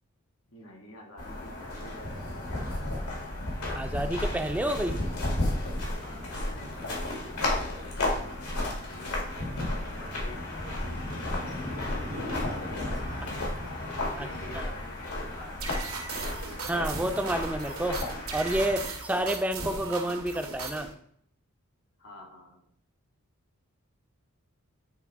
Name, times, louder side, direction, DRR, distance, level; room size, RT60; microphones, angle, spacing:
voice 1, 0.5-2.2 2.5-3.3 4.8-5.0 6.0-12.6 13.1-13.7 14.2-15.9 22.0-22.7, left 1 dB, 70° left, 2 dB, 1.8 m, -49 dB
sound 1, 1.2-18.8, left 1 dB, 90° left, 2.3 m, -33 dB
voice 2, 3.7-5.0 14.2-14.3 16.7-18.0 18.3-20.9, right 1 dB, 5° right, 6 dB, 0.5 m, -29 dB
sound 2, 15.6-20.9, right 4 dB, 90° right, 1.8 m, -38 dB
9.6 x 3.4 x 4.6 m, 0.65 s
head